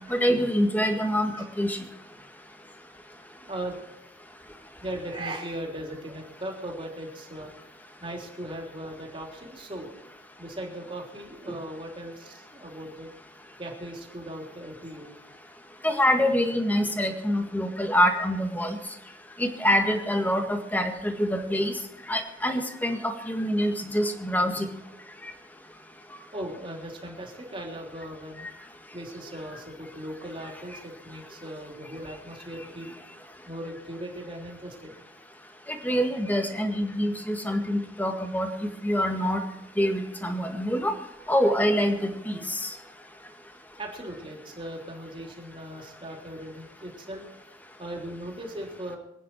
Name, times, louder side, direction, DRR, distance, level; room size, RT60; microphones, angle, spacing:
voice 1, 0.1-1.3 1.6-1.8 15.8-18.8 19.4-21.7 22.1-24.7 35.8-39.4 39.8-40.9 41.3-42.7, equal, 10° left, 5 dB, 1.8 m, -25 dB
voice 2, 3.5-3.8 4.8-7.5 8.0-9.9 10.4-13.1 13.6-15.1 26.3-28.5 28.9-32.9 33.5-35.0 43.8-47.3 47.8-49.0, right 1 dB, 30° right, 0 dB, 3.5 m, -38 dB
26.0 x 9.9 x 4.6 m, 0.85 s
head